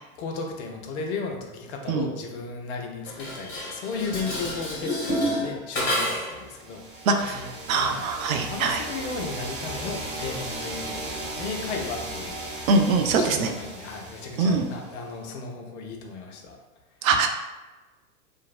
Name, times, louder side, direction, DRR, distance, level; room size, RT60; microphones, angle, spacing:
voice 1, 0.2-7.5 7.8-8.0 8.5-16.6, left 4 dB, 50° left, 2 dB, 0.6 m, -35 dB
Dishes pots and pans, 3.0-6.4, equal, 30° left, 1.4 m, -29 dB
sound 1, 6.4-15.1, right 2 dB, 40° right, 0.7 m, -37 dB
voice 2, 7.1-8.8 12.7-13.5 14.4-14.7 17.0-17.3, right 4 dB, 70° right, 5 dB, 0.5 m, -23 dB
2.8 x 2.6 x 2.4 m, 1.1 s
figure-of-eight pair, 95°, 44 cm